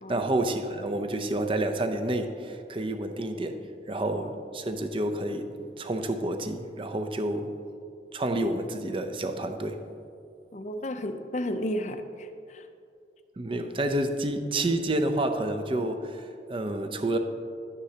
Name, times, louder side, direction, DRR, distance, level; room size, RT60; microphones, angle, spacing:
voice 1, 0.1-3.6 3.9-7.5 8.1-9.8 13.4-17.2, right 1 dB, 30° right, 7 dB, 0.5 m, -29 dB
voice 2, 10.5-12.6, equal, 40° left, 8 dB, 0.5 m, -33 dB
12.0 x 9.7 x 2.8 m, 2.4 s
head